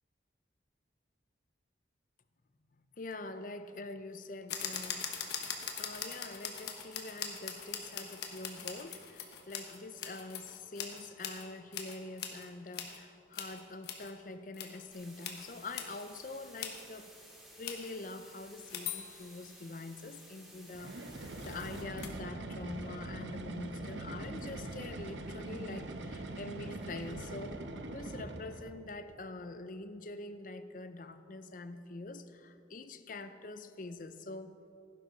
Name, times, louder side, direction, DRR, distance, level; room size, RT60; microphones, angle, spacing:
voice 1, 3.0-5.1 5.7-17.1 17.6-27.6 27.9-34.6, left 2 dB, 45° left, 10 dB, 0.6 m, -45 dB
sound 1, 4.5-11.5 11.7-13.0 13.3-14.1 14.5-14.8 15.2-15.5 15.7-16.0 16.6-16.8 17.6-17.9 18.7-19.6 21.3-22.1, left 7 dB, 65° left, 1.3 m, -42 dB
sound 2, 14.9-21.8, equal, ahead, 2.0 m, -56 dB
sound 3, 20.7-28.8, right 2 dB, 80° right, 0.9 m, -42 dB
16.5 x 10.5 x 4.0 m, 2.6 s
head